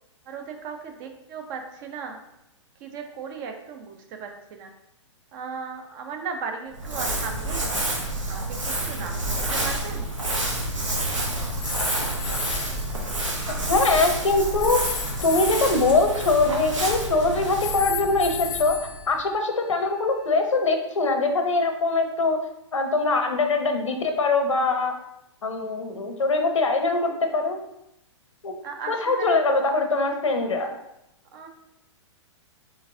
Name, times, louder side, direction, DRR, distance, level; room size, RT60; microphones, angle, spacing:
voice 1, 0.3-2.2 2.8-4.7 5.3-7.7 8.3-10.1 28.6-29.4 31.3-31.5, right 5 dB, 40° right, 4 dB, 0.6 m, -36 dB
Crumpling crinkling, 6.7-19.2, right 1 dB, 90° right, 1.0 m, -29 dB
sound 1, 11.6-12.9 14.6-17.1 17.6-19.9, left 8 dB, 45° left, 0.5 m, -35 dB
voice 2, 13.7-14.8 15.2-18.8 19.1-22.4 22.7-24.9 25.4-27.6 28.4-28.5 28.9-30.7, left 3 dB, 85° left, 5 dB, 0.7 m, -22 dB
3.8 x 3.5 x 2.6 m, 0.85 s
hypercardioid pair, 120°, 16 cm